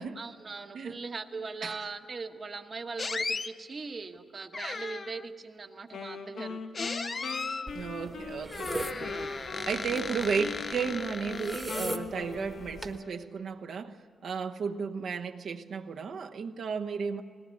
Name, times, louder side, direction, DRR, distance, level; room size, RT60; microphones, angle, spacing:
voice 1, 0.1-6.6 8.9-9.5, right 4 dB, 35° right, 1.2 m, -40 dB
sound 1, 3.0-3.5 4.5-5.3 6.7-7.7 8.5-12.0, left 4 dB, 30° left, 0.6 m, -36 dB
Wind instrument woodwind instrument, 5.9-10.1 10.4-13.3, left 4 dB, 90° left, 2.0 m, -40 dB
sound 2, 7.7-13.0, right 1 dB, 10° right, 1.2 m, -41 dB
voice 2, 7.7-14.0 14.2-17.2, right 5 dB, 65° right, 1.1 m, -34 dB
20.5 x 18.5 x 9.3 m
wide cardioid pair, 150°, 0 cm